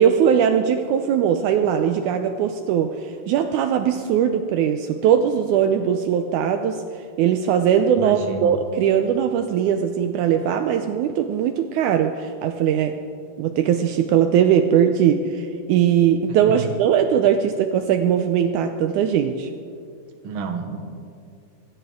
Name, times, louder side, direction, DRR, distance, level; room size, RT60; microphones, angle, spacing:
voice 1, 0.0-6.8 7.2-13.0 13.4-19.5, right 8 dB, 80° right, 7 dB, 1.9 m, -20 dB
voice 2, 8.0-8.5 16.5-16.7 20.2-20.8, right 5 dB, 50° right, 4 dB, 1.7 m, -30 dB
25.0 x 12.5 x 3.6 m, 2.3 s
omnidirectional pair, 3.8 m